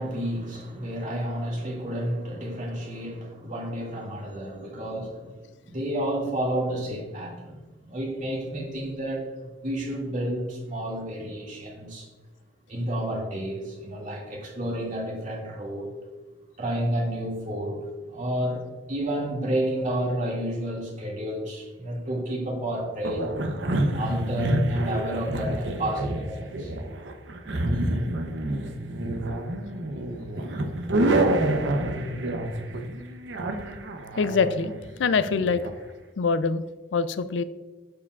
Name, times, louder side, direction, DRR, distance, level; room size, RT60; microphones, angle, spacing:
voice 1, 0.0-9.3 9.6-12.1 12.7-15.9 16.6-23.3 23.9-26.7 27.7-28.0, right 1 dB, 45° right, -3 dB, 2.0 m, -30 dB
sound 1, 23.0-35.7, right 1 dB, 75° right, 0.7 m, -28 dB
voice 2, 34.2-34.7 35.0-35.6 36.2-36.6 36.9-37.4, left 5 dB, 85° left, 13 dB, 0.4 m, -24 dB
12.5 x 4.7 x 2.4 m, 1.2 s
head